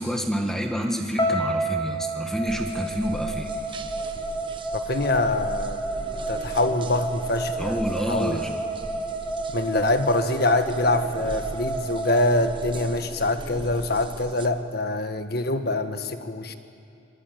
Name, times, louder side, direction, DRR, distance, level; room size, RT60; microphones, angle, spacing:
voice 1, 0.0-3.5 7.6-8.6, equal, ahead, 2 dB, 1.6 m, -28 dB
sound 1, 1.2-13.3, right 2 dB, 20° left, 5.3 m, -30 dB
sound 2, 2.5-14.5, right 1 dB, 25° right, 1.1 m, -39 dB
voice 2, 4.7-5.8 6.3-8.4 9.5-16.5, left 2 dB, 50° left, 8 dB, 1.4 m, -25 dB
25.0 x 23.5 x 9.3 m, 2.6 s
head